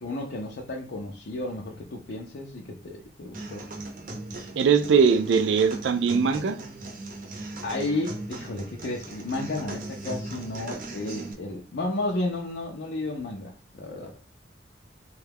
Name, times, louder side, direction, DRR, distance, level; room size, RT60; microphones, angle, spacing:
voice 1, 0.0-3.7 7.6-14.1, left 2 dB, 70° left, 0.5 m, -32 dB
sound 1, 3.3-11.3, right 2 dB, 50° right, 0.7 m, -38 dB
voice 2, 4.6-6.6, right 6 dB, 85° right, 0.4 m, -21 dB
3.2 x 2.3 x 3.4 m
head